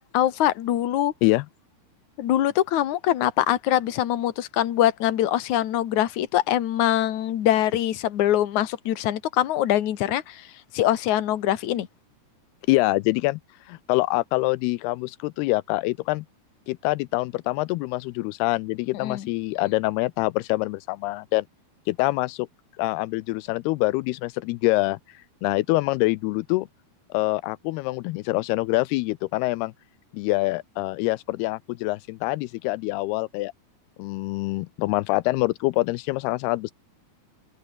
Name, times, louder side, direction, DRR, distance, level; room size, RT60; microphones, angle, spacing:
voice 1, 0.1-1.1 2.2-10.5 10.7-11.9 18.9-19.3, left 12 dB, 55° left, 2.7 m, -23 dB
voice 2, 12.7-13.4 13.7-16.3 16.7-21.5 21.9-22.5 22.8-25.0 25.4-26.7 27.1-29.7 30.1-33.5 34.0-36.7, left 21 dB, 85° left, 2.6 m, -25 dB
open air
omnidirectional pair, 4.5 m